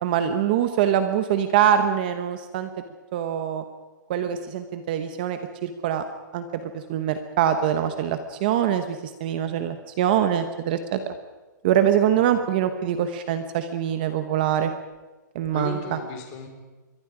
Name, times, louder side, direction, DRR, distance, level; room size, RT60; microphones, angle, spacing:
voice 1, 0.0-2.7 3.1-3.6 4.1-6.0 6.3-11.1 11.6-14.7 15.3-16.0, right 9 dB, 30° right, 9 dB, 1.1 m, -24 dB
voice 2, 15.5-16.5, left 5 dB, 25° left, 4 dB, 3.7 m, -35 dB
28.0 x 23.0 x 5.0 m, 1.2 s
hypercardioid pair, 180°, 10 cm